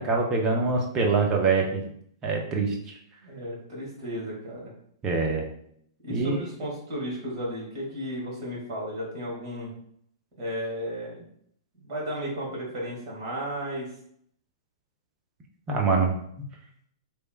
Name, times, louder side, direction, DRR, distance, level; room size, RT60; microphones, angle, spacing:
voice 1, 0.0-1.8 2.2-2.7 5.0-5.4 6.1-6.4 15.7-16.1, right 4 dB, 25° right, 1 dB, 0.6 m, -24 dB
voice 2, 3.2-4.7 6.0-9.7 10.4-11.2 11.8-13.9, equal, 40° right, -4 dB, 1.4 m, -34 dB
3.0 x 2.1 x 2.3 m, 0.67 s
figure-of-eight pair, 110°, 2 cm